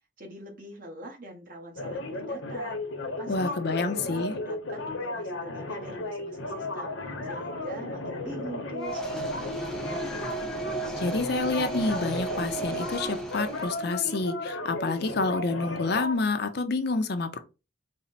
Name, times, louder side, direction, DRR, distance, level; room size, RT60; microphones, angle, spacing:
voice 1, 0.2-2.8 3.2-10.2, right 1 dB, 45° right, 1.0 m, -44 dB
sound 1, 1.8-16.2, left 2 dB, 75° left, 0.8 m, -35 dB
voice 2, 3.3-4.3 11.0-17.4, left 3 dB, 55° left, 0.5 m, -28 dB
sound 2, 8.8-14.0, right 3 dB, 5° left, 0.5 m, -35 dB
4.1 x 2.1 x 4.0 m
head